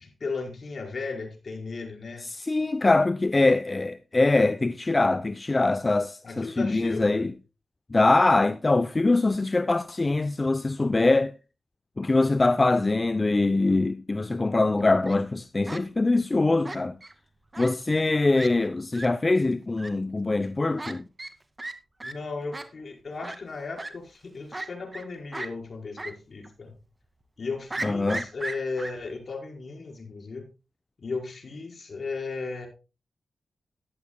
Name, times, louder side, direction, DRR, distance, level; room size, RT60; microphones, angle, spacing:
voice 1, 0.0-2.3 6.2-7.3 22.0-26.8 27.4-30.5 31.0-32.7, left 4 dB, 60° left, 5.0 m, -35 dB
voice 2, 2.2-7.3 7.9-11.3 12.0-16.9 17.6-21.0 27.8-28.2, left 2 dB, 35° left, 0.7 m, -23 dB
Fowl, 14.8-15.2 15.7-15.8 16.6-17.1 17.5-17.7 18.0-18.1 18.3-18.5 18.9-19.1 19.8-19.9 20.8-20.9 21.2-21.3 21.6-21.7 22.0-22.1 22.5-22.6 23.2-23.4 23.8-23.9 24.5-25.0 25.3-25.5 26.0-26.1 26.4-26.5 27.7-28.9, right 2 dB, 30° right, 2.1 m, -35 dB
14.5 x 11.5 x 2.3 m
cardioid pair, 55°, 0 cm